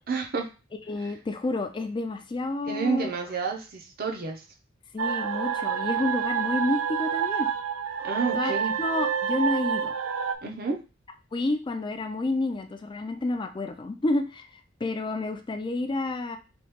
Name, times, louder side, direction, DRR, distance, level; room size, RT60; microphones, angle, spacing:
voice 1, 0.1-0.5 1.0-1.1 2.7-4.4 8.0-8.7 10.4-10.8, right 4 dB, 50° right, 1 dB, 0.7 m, -30 dB
voice 2, 0.9-3.1 4.9-7.5 8.3-8.5 8.8-9.9 11.3-14.5 14.8-16.4, left 2 dB, 25° left, 7 dB, 0.4 m, -29 dB
sound 1, 5.0-10.4, right 7 dB, 90° right, 0.4 m, -28 dB
3.0 x 2.4 x 3.4 m, 0.31 s
head